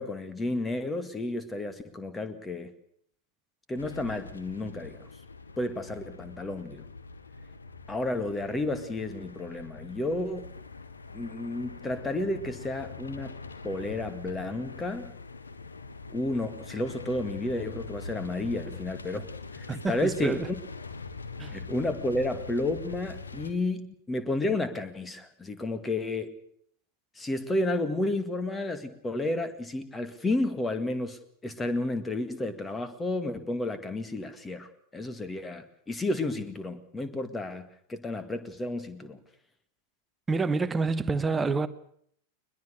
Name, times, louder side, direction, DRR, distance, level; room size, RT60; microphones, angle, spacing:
voice 1, 0.0-2.7 3.7-5.1 5.6-6.8 7.9-10.5 11.1-13.4 13.6-15.1 16.1-19.3 19.6-20.6 21.5-26.3 27.2-37.6 37.9-39.2, left 2 dB, 15° left, 2.0 m, -31 dB
sound 1, 3.8-23.5, left 4 dB, 75° left, 1.5 m, -43 dB
voice 2, 19.7-20.5 21.4-21.6 40.3-41.7, right 4 dB, 15° right, 1.1 m, -28 dB
22.0 x 21.0 x 6.6 m
figure-of-eight pair, 90°, 0 cm